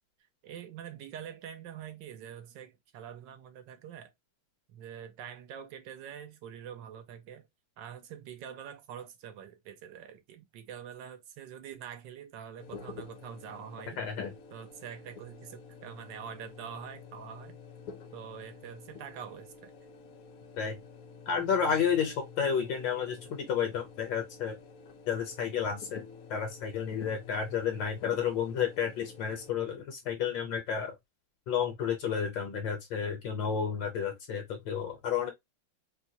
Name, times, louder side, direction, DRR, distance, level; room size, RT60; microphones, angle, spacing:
voice 1, 0.4-4.1 4.7-7.5 7.8-14.0 14.5-17.6 18.1-19.7, right 8 dB, 70° right, 1.3 m, -45 dB
sound 1, 12.6-29.5, left 6 dB, 90° left, 0.7 m, -49 dB
voice 2, 14.0-14.3 20.6-20.8 21.3-24.6 25.1-26.0 26.3-30.9 31.5-35.3, left 7 dB, 70° left, 1.4 m, -31 dB
4.4 x 2.2 x 2.7 m
omnidirectional pair, 2.2 m